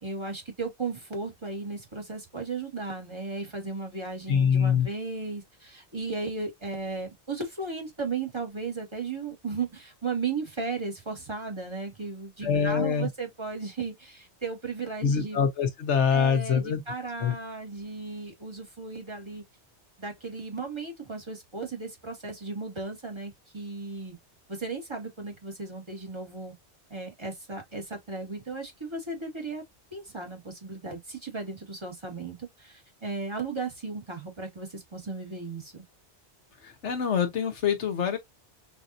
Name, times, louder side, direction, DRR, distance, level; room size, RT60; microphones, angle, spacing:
voice 1, 0.0-15.4 16.1-19.4 20.0-24.1 24.5-26.5 26.9-29.6 29.9-35.8, right 4 dB, 25° right, 1.6 m, -35 dB
voice 2, 4.3-4.9 12.4-13.1 15.0-16.8 17.2-17.3 36.6-38.2, left 7 dB, 85° left, 1.3 m, -25 dB
5.0 x 2.7 x 2.5 m
omnidirectional pair, 1.2 m